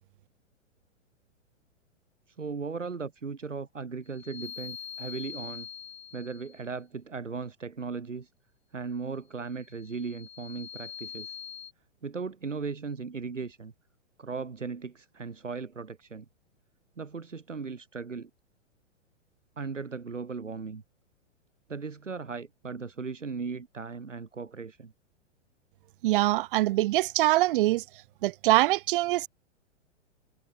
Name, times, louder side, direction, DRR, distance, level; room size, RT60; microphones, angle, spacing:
voice 1, 2.4-5.7 6.1-8.3 8.7-11.4 12.0-13.7 14.2-16.3 17.0-18.3 19.6-20.8 21.7-24.9, right 5 dB, 75° right, 7.4 m, -37 dB
sound 1, 4.1-6.6 9.6-11.7, left 8 dB, 15° left, 5.2 m, -43 dB
voice 2, 26.0-27.8 28.2-29.3, right 17 dB, 45° right, 3.5 m, -23 dB
figure-of-eight pair, 110°, 37 cm